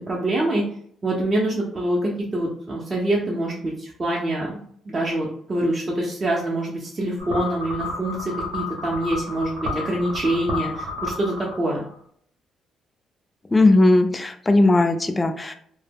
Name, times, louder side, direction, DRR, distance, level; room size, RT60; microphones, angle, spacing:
voice 1, 0.1-0.6 1.0-11.8, right 1 dB, 35° right, -4 dB, 0.6 m, -25 dB
sound 1, 7.2-11.9, left 2 dB, 75° right, 0.8 m, -31 dB
voice 2, 13.5-15.5, left 2 dB, 20° left, 7 dB, 0.3 m, -17 dB
2.1 x 2.0 x 3.4 m, 0.63 s
cardioid pair, 90°, 0 cm